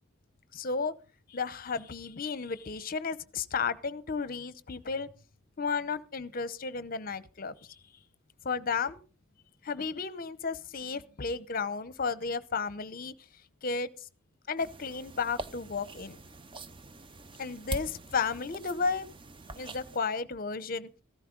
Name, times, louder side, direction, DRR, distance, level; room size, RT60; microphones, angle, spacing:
voice 1, 0.5-0.9 1.3-5.1 5.6-7.8 8.4-9.0 9.6-13.1 13.6-13.9 14.5-16.2 17.4-19.1 19.5-20.9, left 5 dB, 45° left, 0.7 m, -33 dB
sound 1, 14.6-20.0, right 2 dB, 25° right, 0.6 m, -43 dB
15.0 x 13.5 x 3.8 m
head